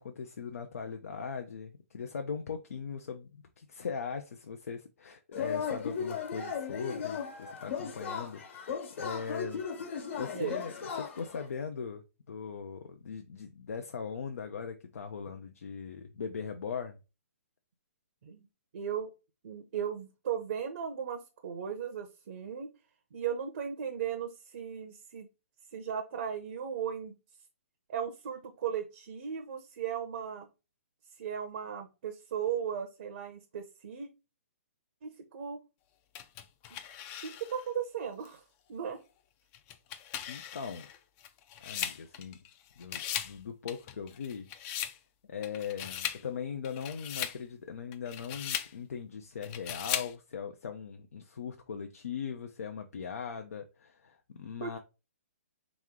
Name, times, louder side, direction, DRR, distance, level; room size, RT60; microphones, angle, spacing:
voice 1, 0.0-9.6 9.9-17.0 40.3-40.9 41.6-42.4 42.8-44.5 45.3-54.8, left 6 dB, 75° left, 0.5 m, -40 dB
Yell / Cheering, 5.3-11.4, left 6 dB, 55° left, 1.3 m, -37 dB
voice 2, 10.0-10.6 18.2-18.5 18.7-19.1 19.4-22.7 23.1-25.3 25.7-27.1 27.9-30.5 31.2-34.1 35.0-35.6 36.7-36.8 37.2-38.4 38.7-39.0 54.6-54.8, right 8 dB, 55° right, 0.7 m, -36 dB
sound 1, 36.1-37.7 38.2-38.3 39.5-42.5 42.8-43.4 43.7-45.0 45.4-46.2 46.6-47.4 47.9-48.7 49.4-50.1, left 10 dB, 25° left, 0.4 m, -38 dB
3.7 x 3.1 x 3.6 m
hypercardioid pair, 145°, 8 cm